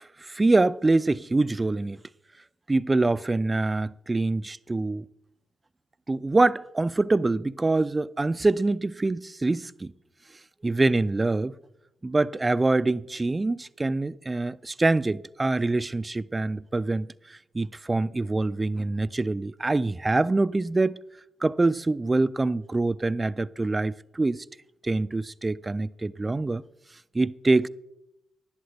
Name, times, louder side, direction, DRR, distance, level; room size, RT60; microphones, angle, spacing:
voice 1, 0.0-2.0 2.7-5.1 6.1-9.9 10.6-11.5 12.0-21.0 21.4-24.4 24.8-26.6 27.1-27.7, right 2 dB, 25° right, 0.3 m, -25 dB
11.5 x 11.0 x 3.3 m
cardioid pair, 70°, 0 cm